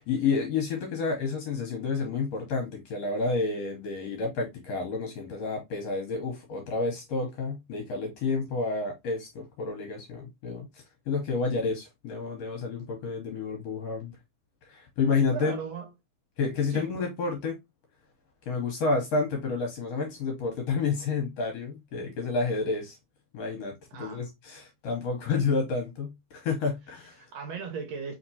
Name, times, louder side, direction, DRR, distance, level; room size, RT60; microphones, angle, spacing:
voice 1, 0.0-14.1 14.6-15.6 16.4-17.6 18.5-23.0 23.3-27.2, left 4 dB, 70° left, 1.7 m, -30 dB
voice 2, 15.3-15.9 16.7-17.1 23.9-24.3 27.2-28.1, right 6 dB, 70° right, 1.7 m, -37 dB
4.3 x 3.5 x 2.7 m
omnidirectional pair, 3.6 m